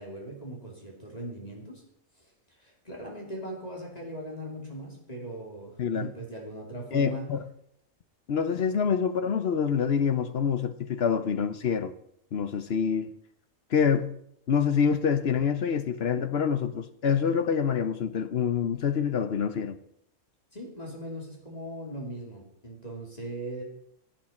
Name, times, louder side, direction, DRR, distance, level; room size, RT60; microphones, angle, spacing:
voice 1, 0.0-1.8 2.2-7.3 9.0-9.1 20.5-23.6, right 1 dB, 25° left, 2.8 m, -39 dB
voice 2, 6.9-7.4 8.3-11.9 12.3-13.1 13.7-14.1 14.5-19.8, left 7 dB, 55° left, 0.8 m, -26 dB
15.5 x 8.8 x 4.3 m
omnidirectional pair, 1.5 m